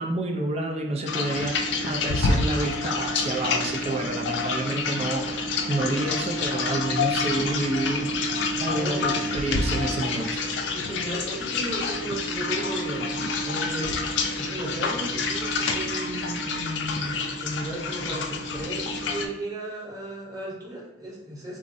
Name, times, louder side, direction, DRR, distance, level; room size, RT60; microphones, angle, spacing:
voice 1, 0.0-8.1 8.6-10.4, right 2 dB, 35° right, 2 dB, 0.4 m, -29 dB
sound 1, 1.1-19.3, left 3 dB, 80° left, 0.3 m, -28 dB
voice 2, 8.7-9.1 10.7-13.1 13.4-14.0 14.4-21.6, right 1 dB, 20° right, -7 dB, 1.0 m, -35 dB
3.5 x 2.1 x 2.6 m, 0.78 s
head